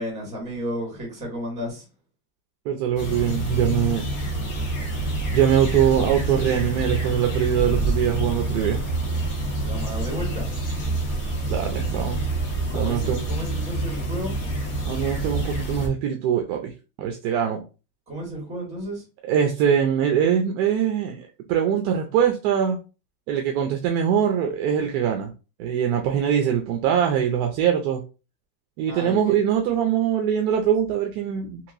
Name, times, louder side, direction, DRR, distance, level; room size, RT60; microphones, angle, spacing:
voice 1, 0.0-1.9 9.6-10.5 12.7-14.4 18.1-19.0 28.9-29.3, equal, 15° right, 1.5 m, -33 dB
voice 2, 2.7-4.0 5.3-8.8 11.5-12.2 12.7-13.2 14.9-16.7 17.0-17.6 19.3-22.8 23.3-25.3 25.6-28.0 28.8-31.6, right 9 dB, 50° right, 0.5 m, -22 dB
sound 1, 3.0-15.9, right 2 dB, 45° left, 1.2 m, -27 dB
3.0 x 2.9 x 2.5 m
supercardioid pair, 160°, 42 cm